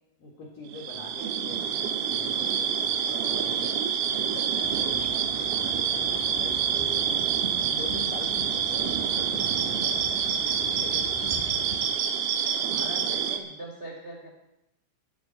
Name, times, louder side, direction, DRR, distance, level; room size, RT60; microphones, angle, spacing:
voice 1, 0.2-3.8 4.2-7.1 7.7-11.5, left 3 dB, 55° left, -2 dB, 2.6 m, -43 dB
sound 1, 0.7-13.4, right 8 dB, 90° right, 3.7 m, -27 dB
sound 2, 4.6-11.8, right 1 dB, 15° left, 3.6 m, -41 dB
voice 2, 12.4-14.3, right 1 dB, 30° right, -2 dB, 1.3 m, -41 dB
20.5 x 8.7 x 4.5 m, 0.86 s
omnidirectional pair, 5.9 m